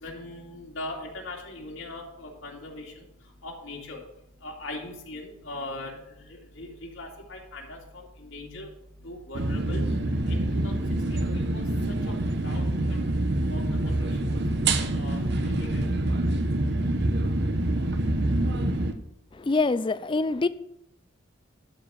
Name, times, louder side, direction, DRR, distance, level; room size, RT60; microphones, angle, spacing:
voice 1, 0.0-2.9 3.4-4.0 4.4-6.0 6.3-8.7 9.0-9.8 10.3-10.8 11.1-11.2 11.5-11.6 12.4-13.0 13.5-14.1 14.9-15.9, left 2 dB, 75° left, 2.5 m, -40 dB
sound 1, 9.3-18.9, right 1 dB, 55° right, 1.0 m, -26 dB
voice 2, 19.3-20.5, left 3 dB, 25° left, 0.4 m, -25 dB
12.0 x 5.0 x 7.1 m
head